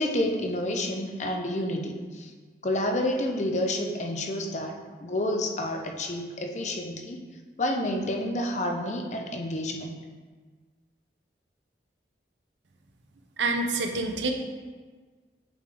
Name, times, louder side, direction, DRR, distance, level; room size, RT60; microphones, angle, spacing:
voice 1, 0.0-2.3 2.6-7.2 7.6-10.0, left 1 dB, 40° left, 3 dB, 0.6 m, -29 dB
voice 2, 13.4-14.3, right 3 dB, 90° right, 4 dB, 0.6 m, -27 dB
8.6 x 3.8 x 3.3 m, 1.5 s
head